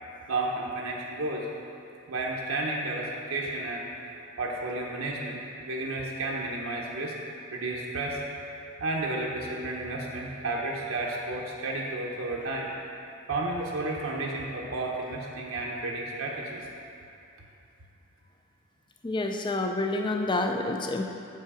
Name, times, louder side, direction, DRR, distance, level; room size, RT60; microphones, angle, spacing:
voice 1, 0.3-1.5 2.1-7.2 7.5-12.7 13.3-16.7, right 2 dB, 70° right, -2 dB, 0.9 m, -32 dB
voice 2, 19.0-21.0, left 2 dB, 20° left, 3 dB, 0.4 m, -28 dB
7.6 x 5.6 x 4.9 m, 2.8 s
head